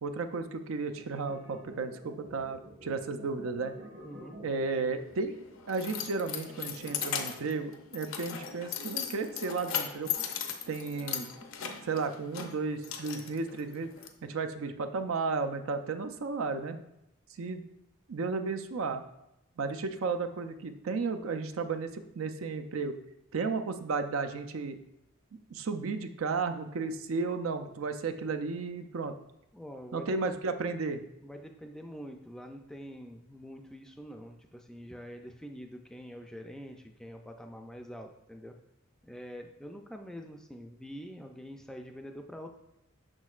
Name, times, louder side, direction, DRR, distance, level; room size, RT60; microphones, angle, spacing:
voice 1, 0.0-3.7 4.4-5.4 5.7-10.1 10.7-11.3 11.8-13.9 14.2-16.8 17.4-17.7 18.1-19.0 19.6-22.9 23.3-24.8 25.5-29.1 29.9-31.0, right 4 dB, 80° right, 7 dB, 0.5 m, -33 dB
sound 1, 0.9-7.7, equal, 55° right, 1.3 m, -50 dB
voice 2, 4.0-4.4 29.5-30.2 31.2-38.5 39.0-42.6, equal, 5° left, 4 dB, 0.3 m, -45 dB
Keys jangling, 5.0-14.1, left 8 dB, 75° left, 0.7 m, -38 dB
6.3 x 6.1 x 2.4 m, 0.86 s
head